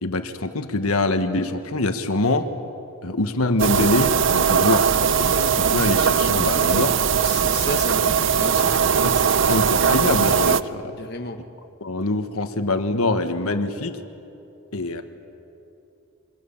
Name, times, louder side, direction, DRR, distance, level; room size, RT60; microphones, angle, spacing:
voice 1, 0.0-2.5 3.0-7.0 9.0-11.0 11.8-13.9 14.7-15.0, left 2 dB, 80° left, 7 dB, 1.5 m, -24 dB
sound 1, 3.6-10.6, right 6 dB, 55° right, 0.6 m, -20 dB
voice 2, 7.2-9.0 11.0-11.4, left 3 dB, 45° left, 4 dB, 1.3 m, -33 dB
27.5 x 24.5 x 7.3 m, 2.9 s
head